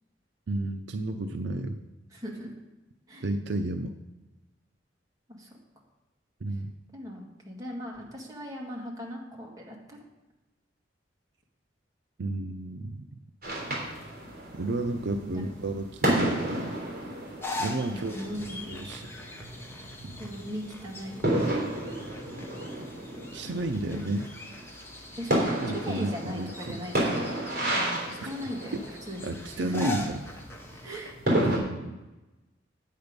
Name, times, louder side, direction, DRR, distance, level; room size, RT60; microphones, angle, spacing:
voice 1, 0.5-1.8 3.2-3.9 6.4-6.7 12.2-13.0 14.5-16.8 17.6-18.3 18.7-19.1 20.0-20.1 23.3-24.3 25.6-26.8 28.7-30.2 31.3-31.9, right 2 dB, 70° right, 7 dB, 0.6 m, -32 dB
voice 2, 2.1-2.5 3.1-3.2 5.3-5.5 6.9-10.0 15.2-15.5 17.9-18.7 20.2-21.3 25.2-27.2 27.7-28.8 29.1-29.3 29.7-29.9 30.8-31.7, equal, 20° right, -3 dB, 2.1 m, -38 dB
sound 1, 13.4-31.6, right 1 dB, 55° right, 3.5 m, -32 dB
sound 2, 17.4-31.1, left 2 dB, 15° left, 1.0 m, -42 dB
8.9 x 8.3 x 5.3 m, 1.1 s
head